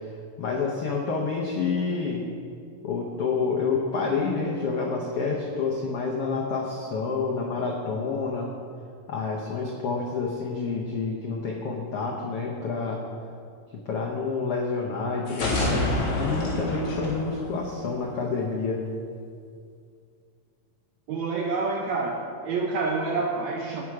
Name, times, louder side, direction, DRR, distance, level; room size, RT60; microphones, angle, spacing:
voice 1, 0.4-2.2 2.8-8.5 9.1-13.0 13.9-18.8, left 4 dB, 80° left, -1 dB, 1.3 m, -28 dB
sound 1, 15.3-18.1, left 2 dB, 55° left, 3.2 m, -28 dB
voice 2, 21.1-23.8, right 3 dB, 75° right, 1 dB, 1.7 m, -28 dB
18.0 x 6.1 x 4.8 m, 2.3 s
omnidirectional pair, 4.1 m